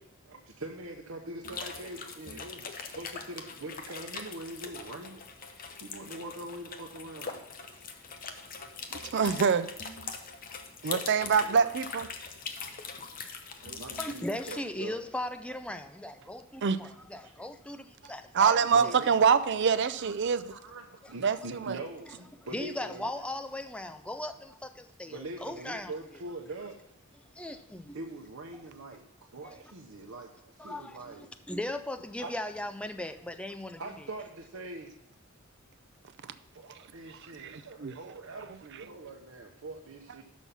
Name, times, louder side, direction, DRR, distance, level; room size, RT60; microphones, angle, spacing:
voice 1, 0.3-5.2 5.8-7.4 11.2-11.7 13.8-15.0 16.2-16.3 17.2-17.3 18.0-18.1 18.7-19.1 20.0-20.1 20.5-23.1 25.1-26.8 27.9-29.0 29.3-31.3 32.2-32.3 33.8-34.9 36.5-40.2, right 2 dB, 85° right, 0.8 m, -43 dB
sound 1, 1.4-14.6, left 5 dB, 45° left, 0.8 m, -42 dB
voice 2, 9.1-9.7 10.8-12.1 13.6-13.8 16.6-16.8 18.3-20.5 21.2-21.8 37.1-37.9, right 6 dB, 60° right, 0.5 m, -25 dB
voice 3, 14.0-18.6 18.8-18.9 21.0-21.1 22.1-22.2 22.4-25.9 27.3-28.0 29.4-29.6 30.6-34.1, left 1 dB, 5° left, 0.4 m, -38 dB
6.2 x 5.7 x 6.8 m
head